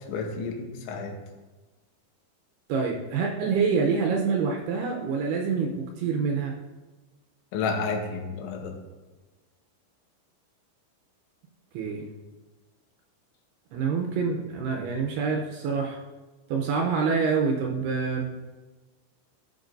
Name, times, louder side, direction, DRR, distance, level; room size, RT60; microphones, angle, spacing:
voice 1, 0.1-1.1 7.5-8.8, left 4 dB, 85° left, 3 dB, 3.3 m, -31 dB
voice 2, 2.7-6.6 11.7-12.0 13.7-16.0 16.5-18.3, right 5 dB, 80° right, 0 dB, 2.5 m, -26 dB
14.0 x 7.4 x 2.6 m, 1.2 s
omnidirectional pair, 5.3 m